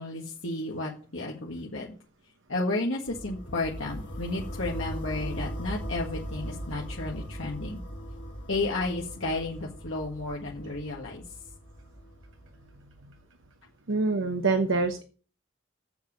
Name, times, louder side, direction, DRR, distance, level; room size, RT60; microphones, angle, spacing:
voice 1, 0.0-1.9 2.5-7.8 8.5-11.2, left 2 dB, 90° left, -2 dB, 1.7 m, -32 dB
sound 1, 3.1-13.0, equal, 65° left, 3.5 m, -39 dB
voice 2, 13.9-15.0, right 3 dB, 85° right, 7 dB, 1.1 m, -25 dB
7.9 x 7.4 x 6.6 m, 0.39 s
head